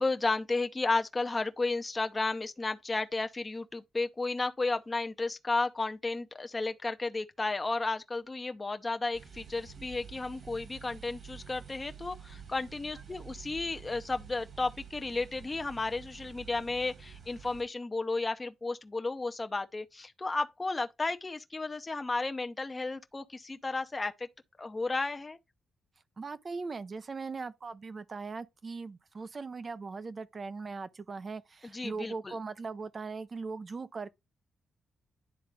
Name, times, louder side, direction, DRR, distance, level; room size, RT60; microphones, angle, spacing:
voice 1, 0.0-24.3 24.6-25.4 31.7-32.3, left 3 dB, 25° left, 0.7 m, -33 dB
sound 1, 9.1-17.6, right 7 dB, 60° right, 2.1 m, -49 dB
voice 2, 26.2-34.1, right 4 dB, 40° right, 0.6 m, -39 dB
10.5 x 3.7 x 3.4 m
cardioid pair, 75°, 0 cm